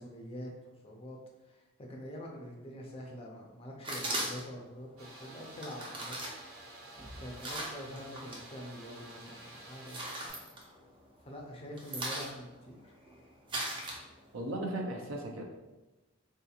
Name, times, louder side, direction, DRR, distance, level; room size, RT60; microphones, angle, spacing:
voice 1, 0.0-6.2 7.2-10.6 11.2-12.9, equal, 30° left, 0 dB, 0.5 m, -46 dB
sound 1, 3.8-4.6 5.5-8.4 8.8-9.3 9.7-11.2 11.5-14.5, right 1 dB, 25° right, 0.5 m, -39 dB
sound 2, 5.0-10.3, right 1 dB, 90° right, 1.0 m, -51 dB
voice 2, 14.3-15.4, right 1 dB, 70° right, 1 dB, 0.5 m, -36 dB
3.6 x 2.8 x 2.4 m, 1.1 s
head